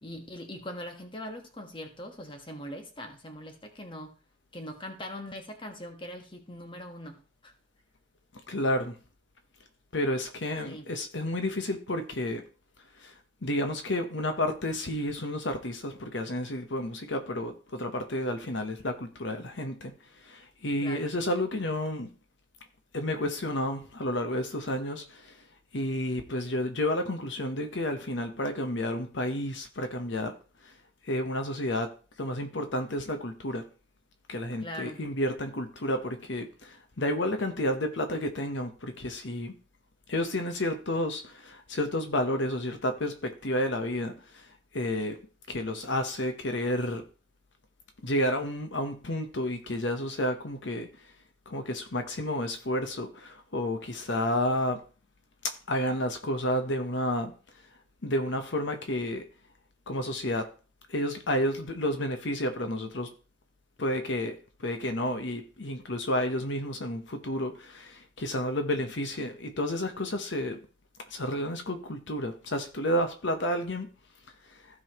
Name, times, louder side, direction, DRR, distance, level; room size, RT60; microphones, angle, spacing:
voice 1, 0.0-4.1 4.5-7.2 7.4-7.5 10.6-10.8 20.8-21.1 34.6-35.0, left 1 dB, 25° left, 1.4 m, -41 dB
voice 2, 8.5-8.9 9.9-12.4 13.0-13.1 13.4-22.1 22.9-25.4 25.7-30.3 30.6-30.7 31.0-31.9 32.2-33.7 34.3-39.5 40.1-44.5 44.7-45.2 45.5-47.0 48.0-51.1 51.5-54.8 55.4-57.3 58.0-59.2 59.9-60.5 60.9-63.1 63.8-64.3 64.6-70.6 71.1-73.9 74.5-74.6, left 1 dB, 65° left, 1.0 m, -31 dB
15.5 x 5.5 x 3.0 m
head